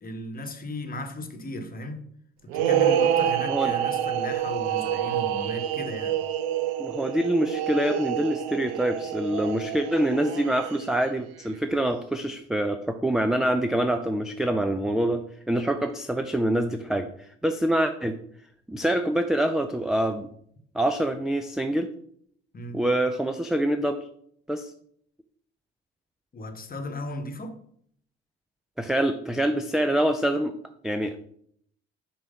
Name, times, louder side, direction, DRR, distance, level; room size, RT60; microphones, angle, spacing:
voice 1, 0.0-2.0 2.4-6.2 22.5-22.8 26.3-27.5, left 1 dB, 25° left, 7 dB, 1.1 m, -36 dB
sound 1, 2.5-11.1, right 10 dB, 70° right, 0.5 m, -27 dB
voice 2, 6.8-17.1 17.4-18.2 18.7-20.3 20.7-21.9 22.7-24.0 24.5-24.7 28.8-30.5 30.8-31.2, right 1 dB, ahead, 7 dB, 0.3 m, -25 dB
6.1 x 3.1 x 5.1 m, 0.66 s
figure-of-eight pair, 55°, 33 cm